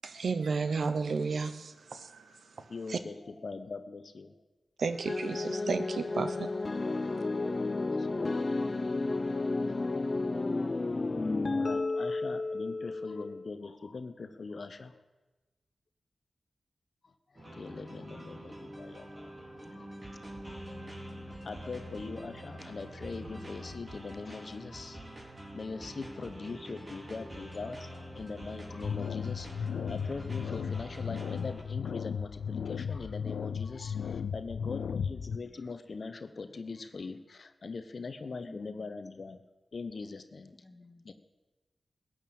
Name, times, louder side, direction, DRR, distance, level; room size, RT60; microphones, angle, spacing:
voice 1, 0.0-3.0 4.8-7.2, right 4 dB, 75° right, 11 dB, 1.0 m, -33 dB
voice 2, 2.7-4.4 7.7-8.7 9.2-10.1 11.5-15.0 17.0-19.3 19.7-19.9 20.5-20.8 21.3-25.1 25.5-39.4 39.7-40.5 41.0-41.1, left 4 dB, 65° left, 10 dB, 1.0 m, -42 dB
sound 1, 5.1-13.5, left 3 dB, 45° left, 0.6 m, -32 dB
sound 2, 17.3-31.6, right 1 dB, 35° right, 4.2 m, -45 dB
sound 3, 28.8-35.4, left 7 dB, 85° left, 0.4 m, -35 dB
voice 3, 29.0-29.4 35.1-35.6 38.4-39.0 40.5-41.1, left 2 dB, 30° left, 4 dB, 2.4 m, -53 dB
15.0 x 9.1 x 8.8 m, 1.2 s
cardioid pair, 45°, 0 cm